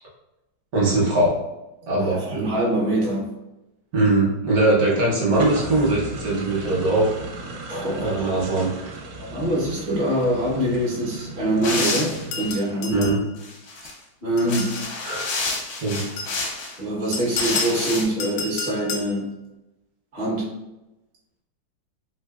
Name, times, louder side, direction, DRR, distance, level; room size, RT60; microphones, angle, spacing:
voice 1, 0.7-1.4 1.9-2.5 3.9-7.1 8.0-8.7 12.9-13.2 15.0-15.3 15.8-16.1, right 2 dB, 60° right, -5 dB, 1.2 m, -21 dB
voice 2, 2.0-3.3 7.7-8.1 9.2-13.1 14.2-14.8 16.8-19.3 20.1-20.5, right 1 dB, 40° right, -5 dB, 0.6 m, -24 dB
sound 1, 5.3-12.6, right 2 dB, 80° right, 1.2 m, -36 dB
sound 2, 11.6-12.6 13.4-13.9 14.4-16.8 17.3-18.0, left 3 dB, 65° left, 0.7 m, -29 dB
sound 3, 12.3-13.2 14.4-14.9 15.9-16.5 17.1-17.8 18.2-19.1, left 5 dB, 85° left, 1.4 m, -31 dB
3.2 x 3.0 x 2.3 m, 0.95 s
omnidirectional pair, 2.1 m